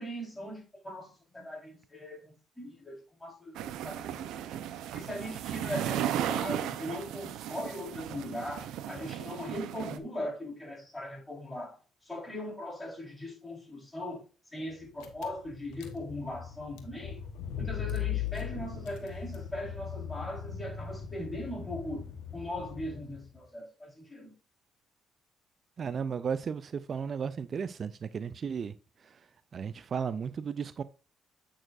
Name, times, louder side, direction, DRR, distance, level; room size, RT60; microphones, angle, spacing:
voice 1, 0.0-4.4 4.9-17.2 17.5-22.1 22.3-24.3, left 1 dB, 15° left, 4.1 m, -40 dB
sound 1, 3.5-10.0, right 10 dB, 85° right, 0.7 m, -35 dB
Car / Engine, 15.0-23.4, left 9 dB, 90° left, 1.2 m, -39 dB
voice 2, 25.8-28.7 29.0-29.2 29.5-30.8, right 6 dB, 50° right, 0.4 m, -34 dB
8.8 x 6.2 x 2.5 m
cardioid pair, 80°, 0 cm